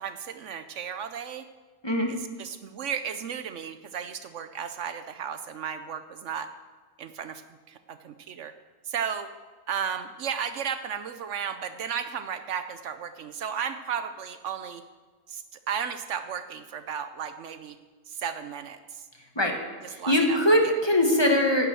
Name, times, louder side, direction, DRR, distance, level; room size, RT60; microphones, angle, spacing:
voice 1, 0.0-1.4 2.1-6.5 7.0-7.4 7.7-8.5 8.8-9.3 9.7-14.8 15.3-17.8 18.1-19.0 20.0-20.4 20.6-20.7, right 7 dB, 70° right, 10 dB, 1.0 m, -34 dB
voice 2, 19.9-21.7, left 1 dB, 20° left, 2 dB, 1.7 m, -22 dB
11.0 x 9.2 x 7.7 m, 1.4 s
omnidirectional pair, 1.3 m